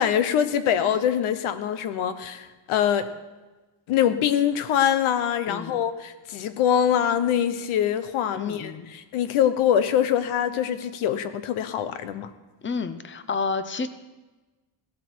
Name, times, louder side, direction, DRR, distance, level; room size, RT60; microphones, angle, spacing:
voice 1, 0.0-3.1 3.9-12.3, left 9 dB, 75° left, 11 dB, 1.1 m, -24 dB
voice 2, 5.5-5.8 8.3-8.9 12.6-13.9, left 4 dB, 25° left, 12 dB, 0.7 m, -30 dB
17.0 x 12.5 x 4.7 m, 1.2 s
cardioid pair, 155°, 50 cm